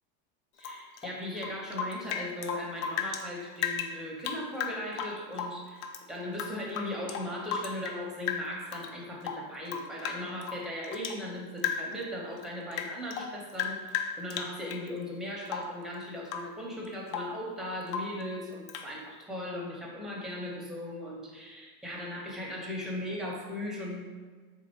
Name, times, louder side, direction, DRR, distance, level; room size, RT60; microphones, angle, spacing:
Rain / Drip, 0.6-3.3 3.6-6.0 6.3-8.0 8.3-8.9 9.2-11.2 11.6-12.0 12.4-14.9 15.5-15.8 16.2-16.6 16.8-17.4 17.9-18.2 18.7-18.9, left 7 dB, 45° left, 0.4 m, -35 dB
voice 1, 0.6-24.0, left 1 dB, ahead, -3 dB, 0.8 m, -38 dB
3.7 x 2.8 x 3.1 m, 1.5 s
hypercardioid pair, 95°, 46 cm